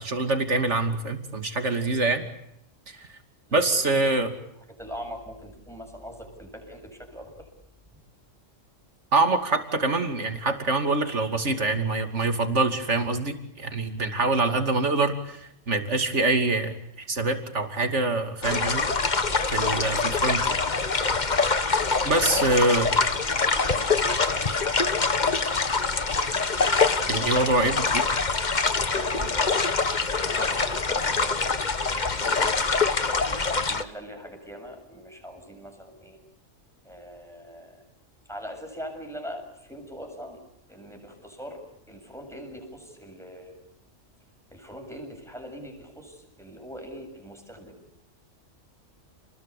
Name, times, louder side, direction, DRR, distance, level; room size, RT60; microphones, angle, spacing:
voice 1, 0.0-2.2 2.9-3.1 3.5-4.3 9.1-18.9 19.5-20.6 22.0-22.9 27.1-28.0, right 2 dB, 65° right, 7 dB, 3.0 m, -25 dB
voice 2, 3.5-4.2 4.7-7.5 22.1-22.7 23.2-24.4 24.6-25.0 28.7-31.6 31.9-32.6 33.3-36.2 36.8-37.8 38.3-40.4 40.7-41.6 41.9-43.5 44.5-47.8, equal, ahead, 2 dB, 7.4 m, -42 dB
sound 1, 18.4-33.8, left 4 dB, 35° left, 1.4 m, -24 dB
30.0 x 21.0 x 8.5 m, 0.79 s
omnidirectional pair, 1.3 m